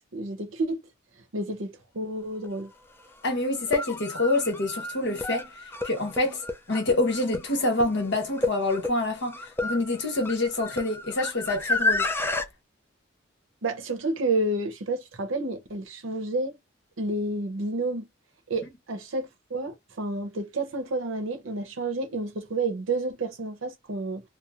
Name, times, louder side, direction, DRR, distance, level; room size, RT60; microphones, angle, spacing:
voice 1, 0.1-0.8 1.3-2.7 13.6-16.6 17.0-18.1 18.5-24.2, right 2 dB, 75° right, 0.8 m, -30 dB
sound 1, 2.4-2.5 3.5-12.5, left 2 dB, 10° left, 0.4 m, -31 dB
voice 2, 3.2-12.1, left 2 dB, 65° left, 1.1 m, -27 dB
2.9 x 2.0 x 2.4 m
head